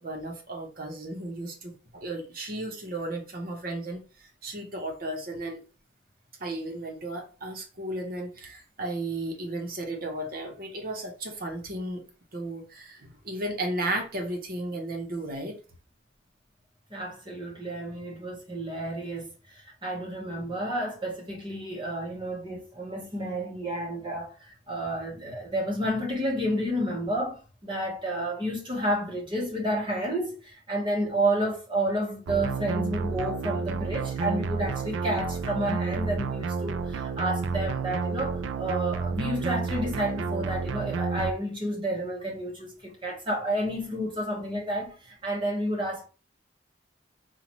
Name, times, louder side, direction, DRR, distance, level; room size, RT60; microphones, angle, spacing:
voice 1, 0.0-5.6 6.4-12.0 12.3-15.6, right 1 dB, 50° right, 1.0 m, -34 dB
voice 2, 16.9-46.0, right 1 dB, 25° right, 1.1 m, -30 dB
sound 1, 32.3-41.3, right 5 dB, 75° right, 0.4 m, -30 dB
5.7 x 2.4 x 3.0 m
head